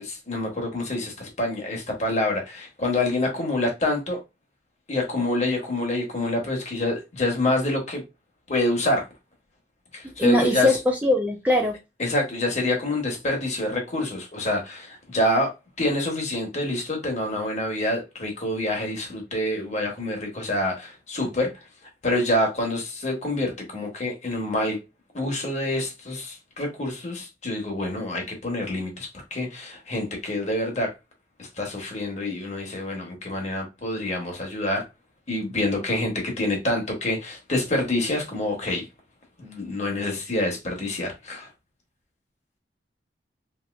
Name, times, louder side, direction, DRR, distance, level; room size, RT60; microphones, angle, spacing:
voice 1, 0.0-4.2 4.9-8.0 8.5-9.0 9.9-10.7 12.0-15.5 15.8-21.5 22.0-24.8 25.1-30.9 31.4-34.9 35.3-38.8 39.4-41.5, left 1 dB, 40° left, 1.0 m, -27 dB
voice 2, 10.2-11.7, left 1 dB, 10° right, 0.4 m, -21 dB
3.0 x 2.6 x 2.4 m
head